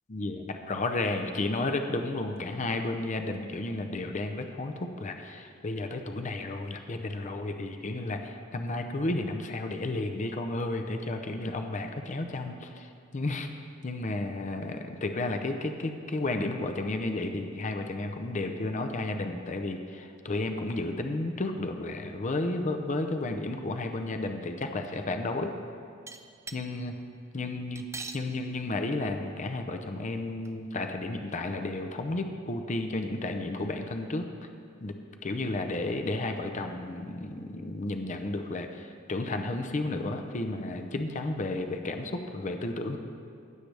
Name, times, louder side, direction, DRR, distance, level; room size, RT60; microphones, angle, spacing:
voice 1, 0.1-12.9 13.1-13.5 13.8-25.5 26.5-26.9 27.3-27.8 28.1-34.2 34.8-34.9 35.2-43.0, left 2 dB, 35° left, 5 dB, 0.6 m, -32 dB
sound 1, 26.1-26.6 27.7-28.2 29.1-29.2 29.5-29.6 30.4-30.5, right 4 dB, 15° right, 0.4 m, -40 dB
16.0 x 6.8 x 3.4 m, 2.5 s
head